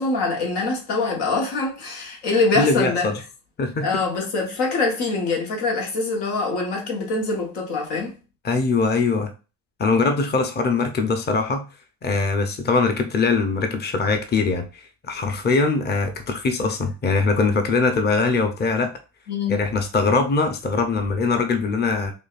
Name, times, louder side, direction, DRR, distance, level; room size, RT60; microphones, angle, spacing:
voice 1, 0.0-3.1 3.8-8.2 19.3-19.6, left 3 dB, 80° left, 1.4 m, -24 dB
voice 2, 2.6-3.2 3.6-4.0 8.4-9.3 9.8-11.6 12.0-18.9 19.5-22.1, left 4 dB, 25° left, 0.7 m, -22 dB
5.0 x 2.4 x 2.4 m
supercardioid pair, 80°, 41 cm